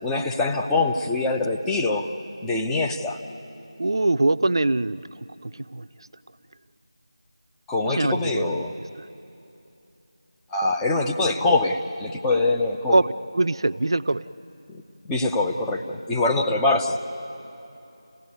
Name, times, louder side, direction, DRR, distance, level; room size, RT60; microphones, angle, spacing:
voice 1, 0.0-2.1 2.4-3.2 7.7-8.7 10.5-13.0 14.7-14.8 15.1-17.0, left 2 dB, 5° left, 0 dB, 0.6 m, -24 dB
voice 2, 3.8-5.0 5.4-5.9 7.8-8.6 9.0-9.1 12.9-13.1 13.3-14.2, right 2 dB, 55° right, 14 dB, 0.6 m, -23 dB
29.0 x 16.5 x 9.7 m, 2.8 s
figure-of-eight pair, 165°, 3 cm